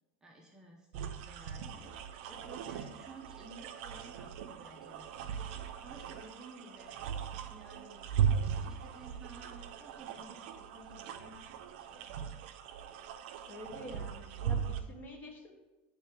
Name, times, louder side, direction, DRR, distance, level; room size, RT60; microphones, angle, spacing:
voice 1, 0.2-1.9 2.3-7.0 7.5-8.1 8.6-12.2, right 2 dB, 10° right, -1 dB, 0.6 m, -54 dB
sound 1, 0.9-14.8, right 8 dB, 75° right, 0.5 m, -38 dB
voice 2, 13.5-15.5, left 1 dB, 30° left, 2 dB, 1.0 m, -47 dB
8.8 x 3.2 x 3.4 m, 1.1 s
supercardioid pair, 145°, 6 cm